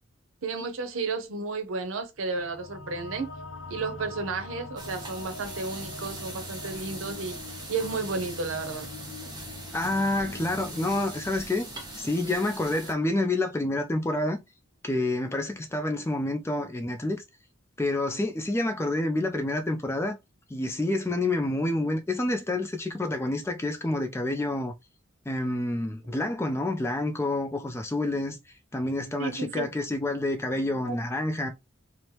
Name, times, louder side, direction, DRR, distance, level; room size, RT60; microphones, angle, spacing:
voice 1, 0.4-3.3 3.7-7.4 7.7-8.9 29.2-29.7 30.8-31.0, right 4 dB, 90° right, 0.6 m, -32 dB
sound 1, 2.3-13.2, left 3 dB, 75° left, 0.5 m, -43 dB
sound 2, 4.8-12.9, right 2 dB, 20° right, 0.8 m, -42 dB
voice 2, 9.7-11.6 11.9-14.4 14.8-17.2 17.8-20.2 20.5-24.7 25.3-28.4 28.7-31.5, left 2 dB, 15° left, 0.3 m, -28 dB
3.2 x 2.1 x 2.8 m
head